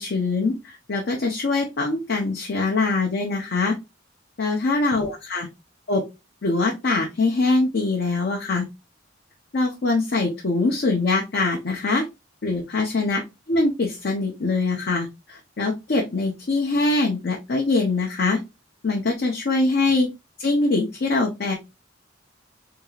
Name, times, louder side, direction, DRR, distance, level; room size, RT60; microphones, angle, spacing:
voice 1, 0.0-3.8 4.4-5.5 5.9-6.0 6.4-8.7 9.5-12.1 12.4-13.2 13.5-18.4 18.8-20.1 20.4-21.5, left 3 dB, 55° left, 1 dB, 0.7 m, -23 dB
3.6 x 2.4 x 3.1 m, 0.24 s
head